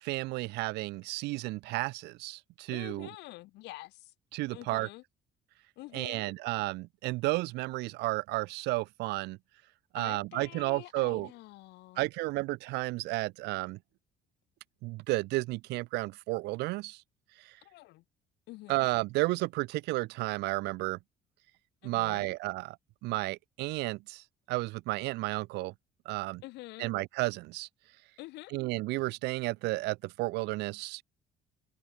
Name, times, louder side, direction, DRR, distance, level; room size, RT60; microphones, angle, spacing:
voice 1, 0.0-3.1 4.3-4.9 5.9-9.4 9.9-11.3 12.0-13.8 14.8-17.0 18.7-21.0 21.8-22.8 23.0-25.7 26.1-26.4 26.8-27.7 28.5-31.0, right 21 dB, 85° right, 0.6 m, -32 dB
voice 2, 2.7-4.1 4.5-5.0 5.8-6.3 9.9-12.1 17.6-18.0 18.5-18.8 21.8-22.3 26.4-26.9 28.2-28.5, left 19 dB, 85° left, 4.9 m, -47 dB
cardioid pair, 110°, 17 cm